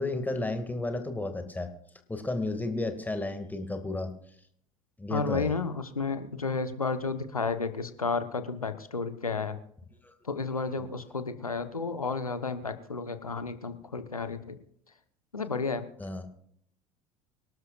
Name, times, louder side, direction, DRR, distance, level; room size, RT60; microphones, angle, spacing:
voice 1, 0.0-1.7 2.1-4.1 5.0-5.5 10.0-10.1 10.6-10.8 16.0-16.3, left 2 dB, 10° left, 6 dB, 2.2 m, -32 dB
voice 2, 5.1-9.6 10.2-14.6 15.3-15.9, left 4 dB, 85° left, 10 dB, 1.1 m, -32 dB
25.0 x 12.5 x 2.5 m, 0.66 s
figure-of-eight pair, 70°, 18 cm